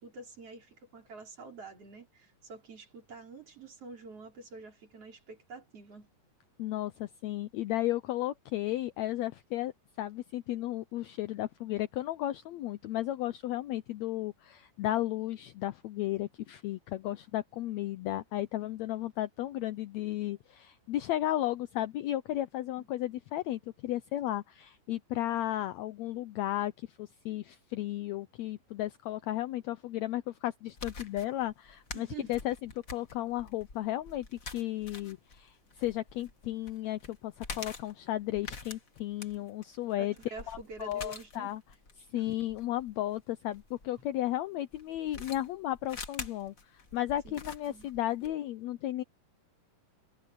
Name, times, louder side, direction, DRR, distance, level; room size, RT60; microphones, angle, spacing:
voice 1, 0.0-6.1 22.8-22.9 31.9-32.4 40.0-41.5 42.1-42.3 47.2-47.3 47.7-47.9, right 4 dB, 45° right, 4.9 m, -47 dB
voice 2, 6.6-9.7 10.0-41.6 42.0-49.0, left 14 dB, 85° left, 1.5 m, -34 dB
sound 1, 30.7-43.9 44.7-48.3, left 4 dB, 30° left, 1.8 m, -46 dB
omnidirectional pair, 3.9 m